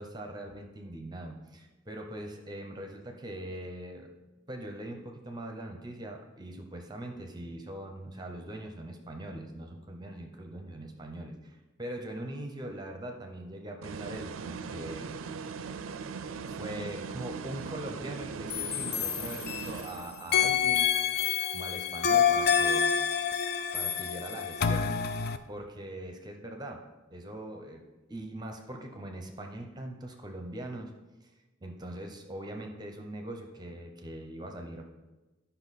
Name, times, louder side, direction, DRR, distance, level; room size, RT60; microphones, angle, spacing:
voice 1, 0.0-4.1 4.5-15.1 16.5-20.9 21.5-22.9 23.7-25.0 25.5-26.8 27.1-30.9 31.2-31.3 31.6-34.8, right 1 dB, 20° right, 3 dB, 0.7 m, -41 dB
sound 1, 13.8-20.4, right 5 dB, 80° right, 0.5 m, -40 dB
sound 2, 18.5-19.9 20.3-25.4, left 8 dB, 50° left, 0.5 m, -27 dB
11.0 x 5.6 x 4.1 m, 1.1 s
head